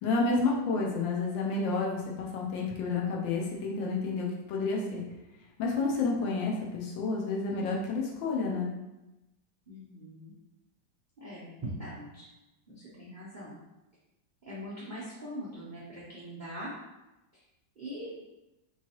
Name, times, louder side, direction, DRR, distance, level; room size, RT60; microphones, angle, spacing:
voice 1, 0.0-5.0 5.6-8.7, left 3 dB, 80° left, -2 dB, 1.4 m, -30 dB
voice 2, 9.7-10.3 11.2-12.3 12.7-13.6 14.5-16.7 17.3-17.4 17.8-18.2, equal, 85° right, -8 dB, 0.4 m, -41 dB
3.5 x 3.1 x 2.9 m, 0.99 s
omnidirectional pair, 2.0 m